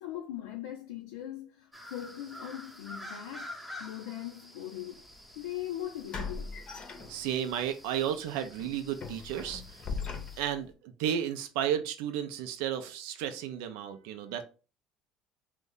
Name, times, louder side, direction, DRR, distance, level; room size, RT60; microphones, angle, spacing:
voice 1, 0.0-5.1 5.4-6.6, left 12 dB, 90° left, 0.4 m, -40 dB
sound 1, 1.7-10.4, left 1 dB, 5° right, 0.7 m, -49 dB
sound 2, 5.0-5.1 6.1-7.6 8.0-8.2 8.6-10.7, left 5 dB, 45° left, 0.6 m, -39 dB
voice 2, 7.1-9.6 10.1-14.5, right 9 dB, 80° right, 0.4 m, -33 dB
2.6 x 2.1 x 3.7 m
supercardioid pair, 75°, 2 cm